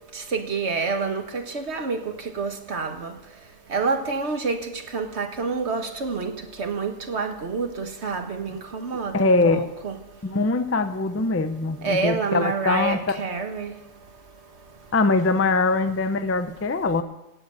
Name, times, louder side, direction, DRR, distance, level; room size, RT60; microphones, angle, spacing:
voice 1, 0.3-2.0 2.4-3.1 3.7-6.3 6.6-10.0 11.8-13.7, right 4 dB, 55° right, 6 dB, 1.6 m, -28 dB
voice 2, 9.1-9.7 10.2-13.2 14.9-17.0, left 3 dB, 15° left, 10 dB, 0.5 m, -22 dB
17.5 x 7.9 x 8.4 m, 0.92 s
omnidirectional pair, 1.4 m